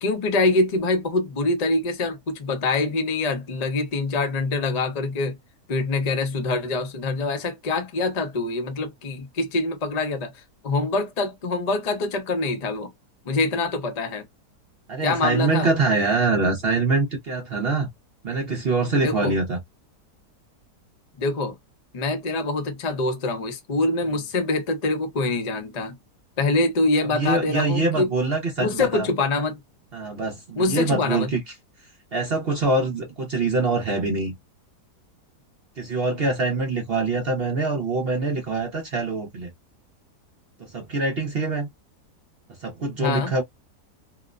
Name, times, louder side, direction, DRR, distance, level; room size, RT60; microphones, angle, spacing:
voice 1, 0.0-5.4 5.7-12.9 13.3-14.2 15.0-15.7 19.0-19.3 21.2-21.5 21.9-25.9 26.4-28.1 28.6-29.6 30.5-31.3 43.0-43.3, left 3 dB, 45° left, 0.5 m, -25 dB
voice 2, 14.9-17.9 18.2-19.6 27.1-29.1 29.9-31.4 32.1-34.3 35.8-39.5 40.7-41.7 42.6-43.4, right 3 dB, 55° right, 0.7 m, -24 dB
2.9 x 2.1 x 2.3 m
omnidirectional pair, 1.7 m